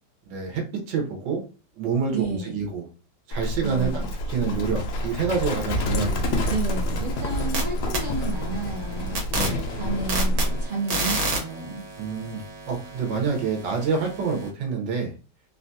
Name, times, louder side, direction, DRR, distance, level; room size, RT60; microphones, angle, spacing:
voice 1, 0.3-1.4 1.8-2.9 3.3-4.0 4.3-6.5 9.3-9.6 12.0-15.1, right 5 dB, 85° right, 2 dB, 1.6 m, -27 dB
voice 2, 2.1-2.6 3.6-4.1 6.5-9.2 9.8-11.8, right 2 dB, 55° right, -1 dB, 0.5 m, -31 dB
Livestock farm animals working animals, 3.3-10.7, left 1 dB, 75° left, 1.2 m, -27 dB
sound 1, 7.1-7.6 7.9-14.5, right 2 dB, 70° right, 1.6 m, -32 dB
3.6 x 2.2 x 2.6 m, 0.33 s
omnidirectional pair, 1.9 m